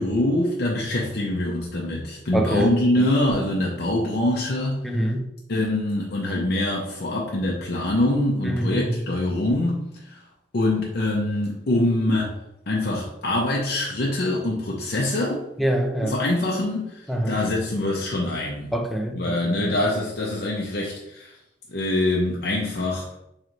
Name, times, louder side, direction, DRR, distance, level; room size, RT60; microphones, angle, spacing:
voice 1, 0.0-4.8 5.5-10.2 10.5-12.3 12.7-15.4 16.0-18.7 19.1-21.4 21.7-23.1, left 1 dB, 65° left, -2 dB, 0.6 m, -24 dB
voice 2, 2.3-3.1 4.8-5.2 8.4-9.1 15.6-16.2 17.1-17.4 18.7-19.6, right 1 dB, ahead, 2 dB, 0.4 m, -25 dB
3.2 x 3.0 x 3.8 m, 0.83 s
head